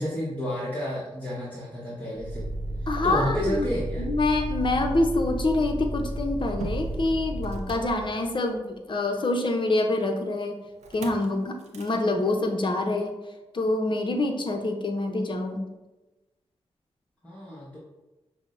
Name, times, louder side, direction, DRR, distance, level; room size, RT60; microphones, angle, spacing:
voice 1, 0.0-2.5 2.8-4.0 17.2-17.8, equal, 15° left, -8 dB, 1.0 m, -31 dB
Motor vehicle (road), 2.2-8.6 10.8-11.3 11.6-12.0, right 1 dB, 90° right, 0.4 m, -33 dB
voice 2, 2.9-3.7 4.0-10.6 10.9-13.2 13.5-15.6, left 2 dB, 45° left, 4 dB, 0.6 m, -26 dB
5.9 x 2.0 x 2.5 m, 1.1 s
cardioid pair, 50°, 11 cm